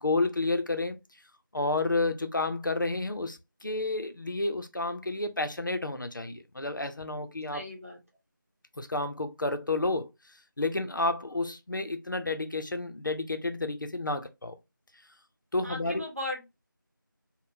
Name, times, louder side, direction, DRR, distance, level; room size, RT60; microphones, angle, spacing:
voice 1, 0.0-1.0 1.5-7.6 8.8-10.1 10.6-14.6 15.5-16.0, left 2 dB, 65° left, 0.5 m, -30 dB
voice 2, 7.5-8.0 15.6-16.4, left 1 dB, 40° right, 0.9 m, -37 dB
3.5 x 2.1 x 2.6 m
figure-of-eight pair, 180°, 11 cm